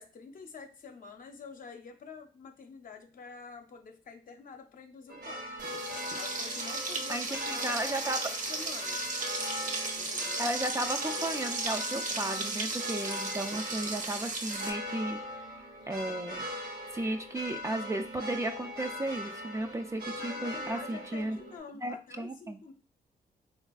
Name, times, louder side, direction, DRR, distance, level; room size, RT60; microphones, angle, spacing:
voice 1, 0.0-7.8 8.5-9.1 9.9-10.5 20.2-22.7, left 5 dB, 60° left, 5 dB, 0.6 m, -47 dB
sound 1, 5.1-21.6, left 1 dB, 80° right, 0.8 m, -40 dB
Frying (food), 5.6-14.7, right 3 dB, 50° right, 0.7 m, -35 dB
voice 2, 7.1-8.2 10.4-15.2 15.9-16.4 16.9-21.4 21.8-22.6, right 1 dB, 20° right, 6 dB, 0.3 m, -34 dB
3.3 x 2.4 x 2.3 m, 0.38 s
cardioid pair, 65°, 16 cm